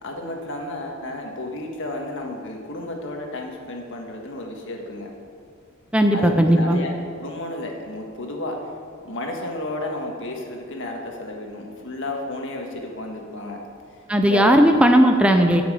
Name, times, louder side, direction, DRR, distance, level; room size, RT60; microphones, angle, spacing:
voice 1, 0.0-5.1 6.1-8.6 9.0-13.6 14.2-14.5, left 1 dB, 65° left, 1 dB, 1.6 m, -32 dB
voice 2, 5.9-6.8 14.1-15.6, equal, 5° right, 5 dB, 0.5 m, -16 dB
11.0 x 6.2 x 7.7 m, 2.3 s
head